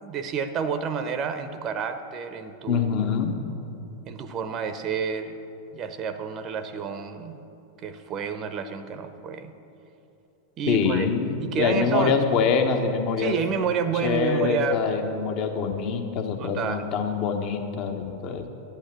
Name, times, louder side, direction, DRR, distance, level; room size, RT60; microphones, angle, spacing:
voice 1, 0.0-3.2 4.1-5.4 5.7-7.4 7.8-9.5 10.6-11.1 11.4-12.2 13.2-14.8 16.4-16.9, right 6 dB, 30° right, 10 dB, 0.7 m, -29 dB
voice 2, 2.7-3.4 10.7-13.3 14.0-18.4, left 5 dB, 40° left, 4 dB, 1.3 m, -25 dB
11.5 x 8.9 x 8.3 m, 2.9 s
figure-of-eight pair, 90°, 0 cm